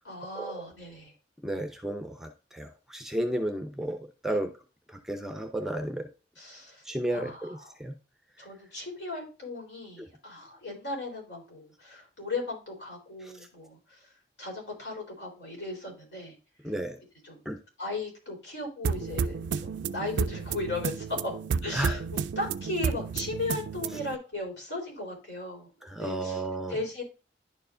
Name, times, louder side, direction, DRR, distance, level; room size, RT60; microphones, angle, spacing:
voice 1, 0.1-1.1 6.4-6.8 7.1-7.7 8.4-13.8 14.4-16.4 17.2-17.4 17.8-21.3 21.6-25.7 26.0-26.4 26.7-27.0, left 2 dB, 80° left, 1 dB, 3.7 m, -36 dB
voice 2, 1.4-4.5 4.9-6.1 6.8-8.0 8.4-8.5 13.2-13.5 16.6-17.0 17.5-17.6 21.7-22.0 23.9-24.0 25.8-26.8, right 1 dB, ahead, 7 dB, 0.6 m, -33 dB
sound 1, 18.8-24.2, right 6 dB, 80° right, 0.3 m, -32 dB
10.5 x 4.6 x 2.5 m, 0.33 s
head